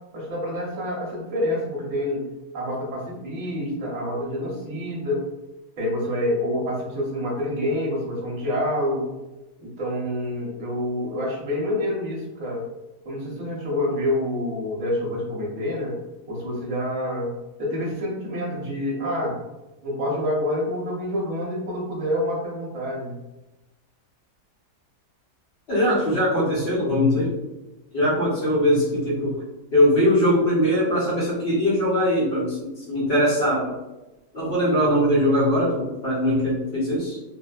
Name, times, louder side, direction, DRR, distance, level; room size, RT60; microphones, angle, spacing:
voice 1, 0.1-2.2 2.5-5.3 5.8-9.1 9.6-12.7 13.0-15.9 16.3-17.3 17.6-19.3 19.8-23.1, left 1 dB, 55° right, -4 dB, 1.1 m, -27 dB
voice 2, 25.7-27.3 27.9-29.4 29.7-33.7 34.3-37.2, equal, 50° left, -7 dB, 0.9 m, -21 dB
2.8 x 2.1 x 2.3 m, 1.0 s
omnidirectional pair, 1.7 m